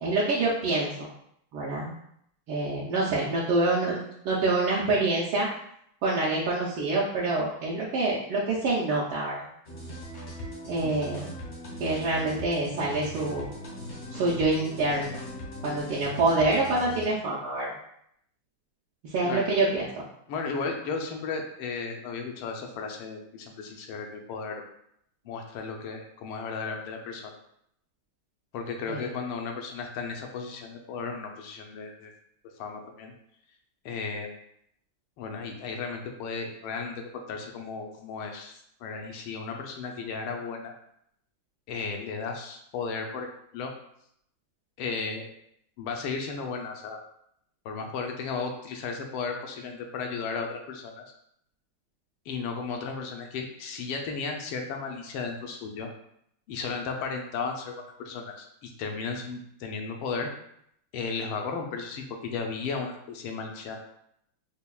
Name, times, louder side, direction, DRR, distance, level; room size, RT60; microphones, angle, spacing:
voice 1, 0.0-1.1 1.5-1.9 2.5-5.5 6.0-9.4 10.7-11.3 11.8-13.5 14.1-15.2 15.6-17.7 19.0-20.0 28.9-29.1, right 2 dB, 75° right, -7 dB, 1.5 m, -26 dB
sound 1, 9.7-17.0, equal, 55° left, 0.7 m, -39 dB
voice 2, 20.3-24.6 25.2-27.3 28.5-32.1 32.6-33.1 33.8-34.3 35.2-40.7 41.7-43.3 43.5-43.7 44.8-45.3 45.8-47.0 47.6-51.0 52.3-55.9 56.5-60.3 60.9-63.8, left 4 dB, 80° left, 3 dB, 1.4 m, -34 dB
5.4 x 2.2 x 2.3 m, 0.73 s
omnidirectional pair, 2.4 m